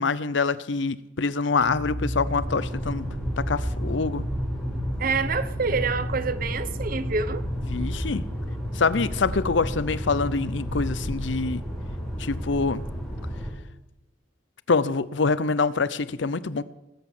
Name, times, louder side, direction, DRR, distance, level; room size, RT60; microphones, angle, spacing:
voice 1, 0.0-3.1 3.4-4.2 7.7-8.2 8.7-11.6 12.2-12.8 14.7-16.6, left 4 dB, 70° left, 0.7 m, -25 dB
sound 1, 1.6-11.1, equal, 80° right, 7.5 m, -33 dB
sound 2, 2.4-13.5, equal, ahead, 4.3 m, -33 dB
voice 2, 5.0-7.4 7.9-8.0, right 4 dB, 50° right, 0.9 m, -27 dB
19.5 x 8.5 x 7.3 m
head